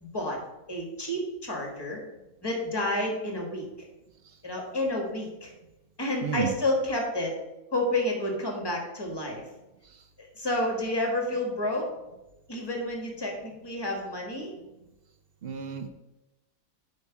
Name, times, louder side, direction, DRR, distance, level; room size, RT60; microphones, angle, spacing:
voice 1, 0.0-0.4 0.7-2.0 2.4-3.6 4.4-5.5 6.0-7.3 7.7-9.4 10.2-11.9 12.5-14.5, left 1 dB, 15° left, 1 dB, 1.5 m, -30 dB
voice 2, 15.4-15.9, right 8 dB, 60° right, 7 dB, 0.6 m, -31 dB
8.0 x 3.8 x 5.9 m, 0.97 s
omnidirectional pair, 1.6 m